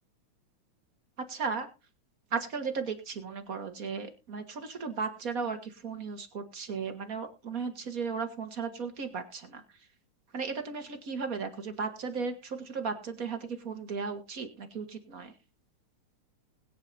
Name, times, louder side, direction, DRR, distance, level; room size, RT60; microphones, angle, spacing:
voice 1, 1.3-1.7 2.3-9.9 10.3-15.3, right 5 dB, 40° right, 6 dB, 1.3 m, -35 dB
20.5 x 9.1 x 2.7 m, 0.29 s
omnidirectional pair, 3.4 m